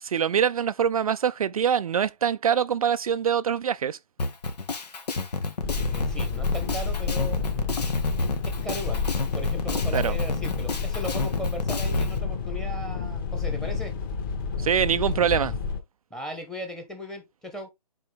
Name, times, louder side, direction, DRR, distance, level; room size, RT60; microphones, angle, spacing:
voice 1, 0.0-4.0 9.9-10.2 14.6-15.5, right 8 dB, 60° right, 0.4 m, -24 dB
Drum kit, 4.2-12.1, left 3 dB, 75° left, 1.7 m, -29 dB
sound 1, 5.6-15.8, left 5 dB, 30° left, 2.1 m, -30 dB
voice 2, 5.8-7.4 8.4-9.0 9.3-13.9 16.1-17.7, equal, ahead, 1.2 m, -37 dB
8.5 x 4.4 x 3.5 m
hypercardioid pair, 155°, 21 cm